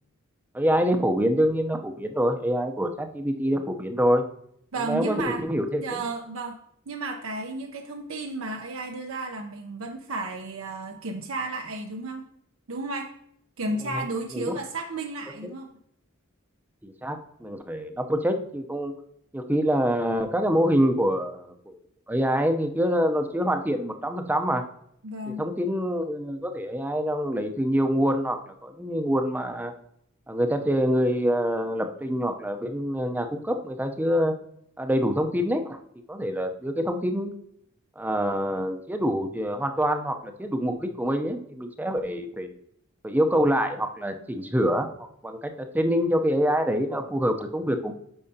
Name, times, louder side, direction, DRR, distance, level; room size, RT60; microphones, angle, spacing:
voice 1, 0.5-4.2 4.8-6.0 13.9-14.1 14.3-14.5 15.4-15.5 16.8-18.9 19.3-21.8 22.1-24.6 25.4-29.7 30.3-34.3 34.8-35.8 36.1-37.3 38.0-42.6 43.0-47.9, equal, 10° right, 6 dB, 0.6 m, -26 dB
voice 2, 4.7-5.4 5.8-6.6 6.9-12.3 12.7-13.1 13.6-15.7 25.0-25.4, right 2 dB, 80° right, 2 dB, 0.7 m, -33 dB
8.7 x 5.6 x 2.7 m, 0.71 s
head